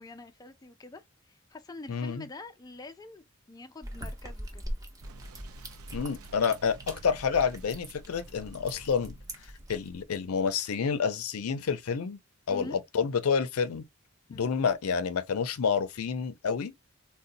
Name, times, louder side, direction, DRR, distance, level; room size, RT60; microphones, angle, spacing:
voice 1, 0.0-4.6 12.5-12.8 14.3-14.5, left 2 dB, 15° left, 0.4 m, -46 dB
voice 2, 1.9-2.3 5.9-9.2 9.7-12.2 12.5-13.8 14.3-16.7, left 6 dB, 90° left, 0.5 m, -29 dB
sound 1, 3.8-10.0, equal, 15° right, 0.7 m, -42 dB
Boom, 5.0-10.6, right 3 dB, 90° right, 0.5 m, -53 dB
3.9 x 2.1 x 2.5 m
head